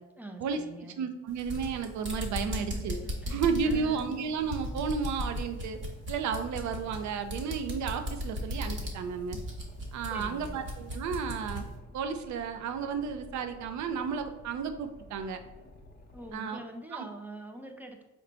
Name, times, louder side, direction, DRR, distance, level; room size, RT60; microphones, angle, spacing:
voice 1, 0.2-1.0 2.4-4.1 10.1-10.6 16.1-18.0, right 1 dB, 5° right, 4 dB, 0.4 m, -44 dB
voice 2, 1.0-3.0 3.3-5.8 6.1-9.4 9.9-11.6 11.9-15.4 16.3-16.6 16.9-17.0, right 6 dB, 70° right, 8 dB, 0.5 m, -32 dB
sound 1, 1.3-11.7, equal, 40° right, 1.1 m, -37 dB
Boat Water vehicle, 2.1-16.3, left 1 dB, 30° left, 0.7 m, -52 dB
4.3 x 2.2 x 3.8 m, 1.0 s
cardioid pair, 90°, 30 cm